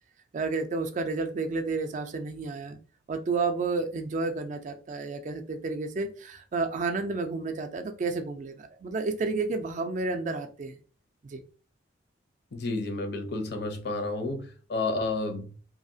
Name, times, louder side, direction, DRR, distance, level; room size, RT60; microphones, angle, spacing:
voice 1, 0.3-2.8 3.1-10.8 11.2-11.4, right 3 dB, 40° right, 7 dB, 0.3 m, -31 dB
voice 2, 12.5-15.5, left 2 dB, 60° left, 6 dB, 0.6 m, -31 dB
2.7 x 2.4 x 2.6 m, 0.38 s
head